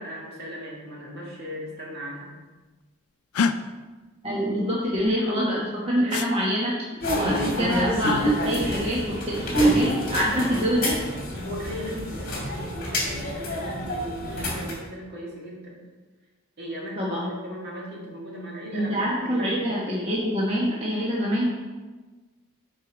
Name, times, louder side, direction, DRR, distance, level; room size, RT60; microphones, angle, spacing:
voice 1, 0.0-2.3 11.3-15.8 16.6-19.6, equal, 50° right, -3 dB, 2.0 m, -37 dB
sound 1, 3.3-3.6 6.1-6.3 8.0-8.3 10.0-10.5, left 5 dB, 85° left, 0.4 m, -26 dB
voice 2, 4.2-6.8 7.1-10.9 17.0-17.3 18.7-21.5, equal, 30° right, -6 dB, 1.2 m, -25 dB
sound 2, 7.0-14.7, equal, 45° left, 2.3 m, -27 dB
7.5 x 4.7 x 5.1 m, 1.3 s
head